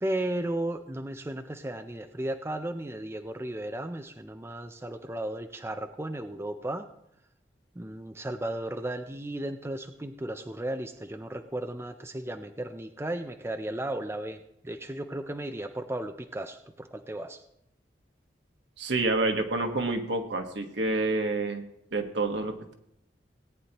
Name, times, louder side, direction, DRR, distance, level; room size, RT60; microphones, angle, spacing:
voice 1, 0.0-6.9 7.8-14.4 14.6-17.4, right 1 dB, 15° right, 7 dB, 0.5 m, -35 dB
voice 2, 18.8-21.6 21.9-22.7, right 2 dB, 70° right, 4 dB, 1.4 m, -28 dB
17.5 x 9.5 x 3.0 m, 0.77 s
head